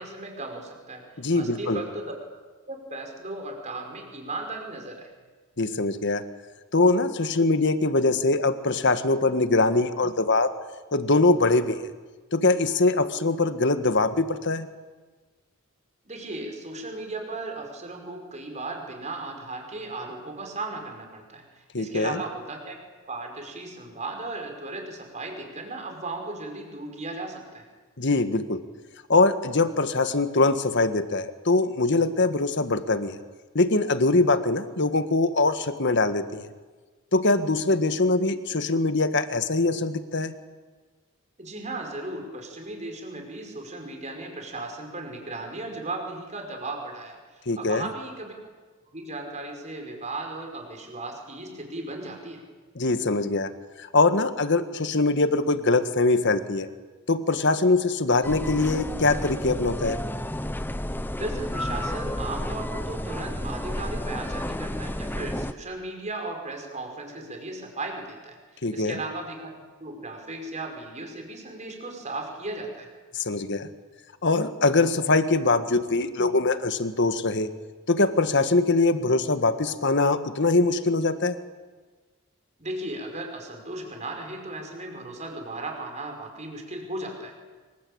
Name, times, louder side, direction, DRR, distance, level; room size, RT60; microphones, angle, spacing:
voice 1, 0.0-2.2 2.7-5.1 16.1-22.8 23.1-27.7 41.4-48.4 48.9-52.4 61.1-72.9 82.6-87.4, right 2 dB, 35° right, 3 dB, 5.5 m, -36 dB
voice 2, 1.2-1.8 5.6-6.2 6.7-10.5 10.9-11.8 12.3-14.7 21.7-22.2 28.0-28.6 29.1-33.2 33.5-36.5 37.1-40.3 47.5-47.9 52.7-53.5 53.8-56.7 57.1-60.0 68.6-69.0 73.1-73.7 74.2-77.5 77.9-81.4, left 3 dB, 55° left, 10 dB, 1.7 m, -23 dB
sound 1, 58.2-65.5, left 1 dB, 10° left, 0.9 m, -31 dB
26.0 x 23.5 x 8.8 m, 1.3 s
head